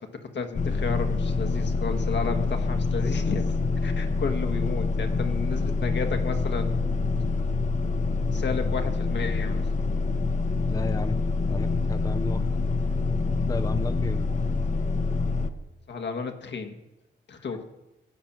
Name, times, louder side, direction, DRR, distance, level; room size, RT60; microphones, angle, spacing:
voice 1, 0.0-3.5 3.8-6.9 8.3-9.7 13.3-13.4 15.9-16.8 17.3-17.6, left 5 dB, 70° left, 5 dB, 1.5 m, -33 dB
sound 1, 0.5-15.5, left 3 dB, 40° left, 0.9 m, -26 dB
voice 2, 10.7-12.4 13.5-14.3 17.4-17.5, left 3 dB, 20° left, 8 dB, 0.5 m, -33 dB
15.5 x 6.0 x 7.4 m, 0.96 s
cardioid pair, 85°, 19 cm